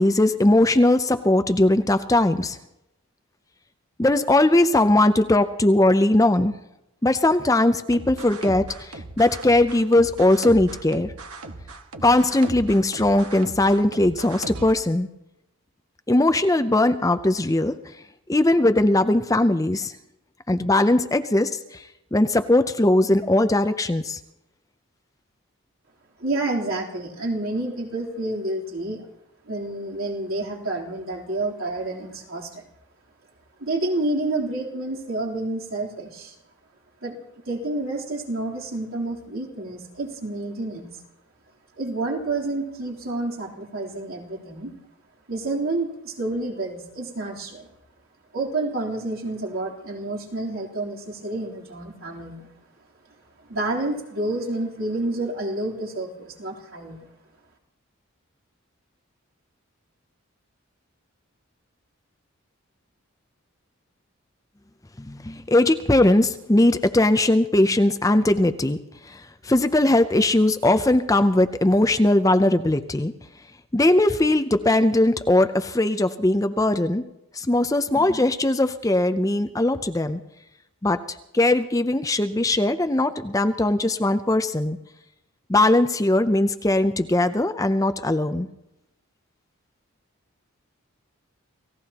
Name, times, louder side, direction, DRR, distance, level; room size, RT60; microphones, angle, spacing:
voice 1, 0.0-2.6 4.0-6.6 7.0-11.1 12.0-15.1 16.1-17.9 18.3-19.9 20.5-24.2 65.0-68.8 69.1-73.1 73.7-77.0 77.3-80.2 80.8-84.8 85.5-88.5, left 1 dB, 15° left, 10 dB, 0.5 m, -20 dB
sound 1, 7.9-14.7, right 2 dB, 90° right, 1.6 m, -37 dB
voice 2, 26.2-29.0 29.4-32.6 33.6-36.3 37.0-37.2 37.4-41.0 41.8-44.7 45.3-47.7 48.3-52.5 53.5-57.0, right 2 dB, 70° right, -3 dB, 3.5 m, -29 dB
29.5 x 16.5 x 2.9 m, 0.87 s
head